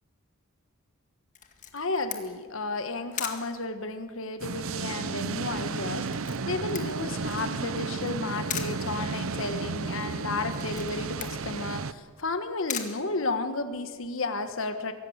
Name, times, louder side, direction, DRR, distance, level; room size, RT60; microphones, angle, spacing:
Camera, 1.4-13.8, left 8 dB, 35° left, 2.0 m, -41 dB
voice 1, 1.7-14.9, left 3 dB, 60° left, 8 dB, 1.4 m, -33 dB
sound 1, 4.4-11.9, right 4 dB, 65° right, 0.7 m, -33 dB
23.5 x 17.5 x 8.1 m, 1.4 s
head